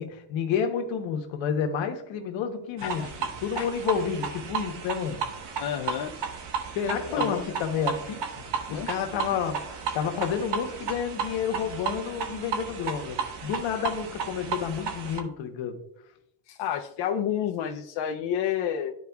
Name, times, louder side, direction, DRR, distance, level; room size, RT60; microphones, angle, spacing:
voice 1, 0.0-3.1 3.4-5.2 6.7-8.4 8.7-15.8, left 7 dB, 85° left, 1.2 m, -30 dB
sound 1, 2.8-15.2, right 6 dB, 65° right, 1.3 m, -34 dB
voice 2, 5.6-6.1 6.9-7.4 8.7-9.0 16.5-19.0, left 9 dB, 70° left, 0.7 m, -30 dB
12.5 x 4.8 x 2.3 m
cardioid pair, 110°, 45 cm